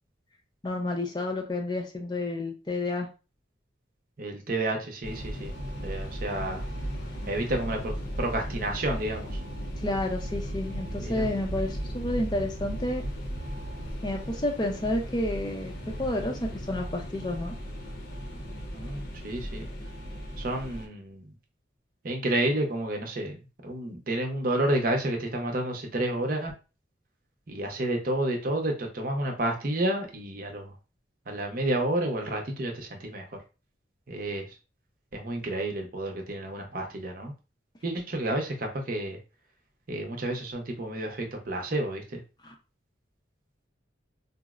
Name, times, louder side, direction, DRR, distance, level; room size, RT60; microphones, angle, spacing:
voice 1, 0.6-3.1 9.8-13.0 14.0-15.7 16.0-17.5, left 1 dB, 20° left, 2 dB, 0.5 m, -30 dB
voice 2, 4.2-5.5 5.8-6.7 7.3-9.4 11.0-11.3 18.4-19.7 20.4-21.3 22.0-23.4 23.6-26.5 27.5-30.8 31.3-33.4 34.1-34.6 35.1-37.3 37.8-39.2 39.9-42.2, right 1 dB, 50° right, 3 dB, 0.6 m, -30 dB
sound 1, 5.0-20.9, equal, 60° left, 0.8 m, -36 dB
3.9 x 2.0 x 2.3 m, 0.31 s
head